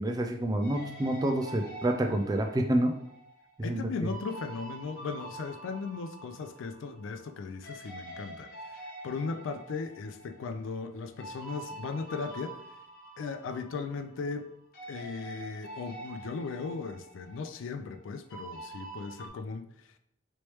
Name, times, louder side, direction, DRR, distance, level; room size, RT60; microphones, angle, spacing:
voice 1, 0.0-2.9 3.7-3.8, right 1 dB, 20° right, 4 dB, 0.3 m, -28 dB
sound 1, 0.6-7.4 7.6-14.5 14.7-19.3, right 2 dB, 50° left, 1.1 m, -46 dB
voice 2, 3.6-12.6 13.2-14.5 14.9-19.7, left 4 dB, 90° left, 8 dB, 0.3 m, -37 dB
3.1 x 3.1 x 3.0 m, 0.72 s
head